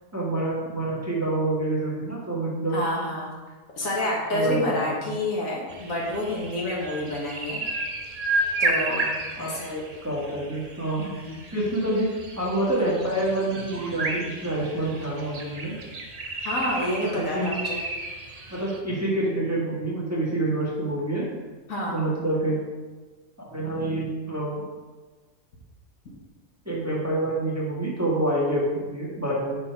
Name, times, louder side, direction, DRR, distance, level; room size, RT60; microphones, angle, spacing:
voice 1, 0.1-2.8 4.3-5.1 9.4-11.0 11.5-15.8 17.0-17.5 18.5-21.3 21.9-22.6 23.4-24.6 26.6-29.6, right 1 dB, 10° right, -6 dB, 1.7 m, -27 dB
voice 2, 2.7-3.3 3.7-7.6 8.6-9.1 9.4-9.7 11.0-11.4 16.4-17.8 21.7-22.0, left 1 dB, 65° left, -4 dB, 2.0 m, -28 dB
sound 1, 5.7-18.8, right 2 dB, 35° right, 0.7 m, -32 dB
9.4 x 4.4 x 4.6 m, 1.3 s
omnidirectional pair, 1.5 m